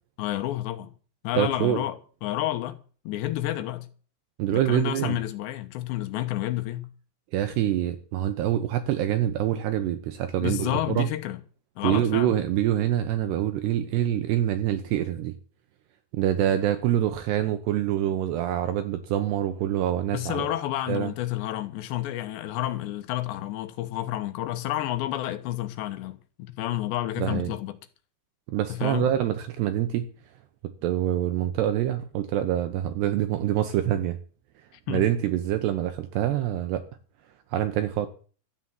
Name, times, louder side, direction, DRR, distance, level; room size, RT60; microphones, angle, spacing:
voice 1, 0.2-0.9 1.2-2.8 3.1-3.9 4.5-6.9 10.4-11.4 11.8-12.3 20.1-27.8 28.7-29.1 34.9-35.1, left 14 dB, 75° left, 3.2 m, -30 dB
voice 2, 1.3-1.8 4.4-5.2 7.3-11.1 11.8-15.3 16.1-20.5 20.9-21.1 27.2-27.5 28.5-30.0 30.8-34.2 34.9-36.8 37.5-38.1, right 12 dB, 75° right, 2.9 m, -25 dB
13.5 x 9.9 x 7.7 m
omnidirectional pair, 5.3 m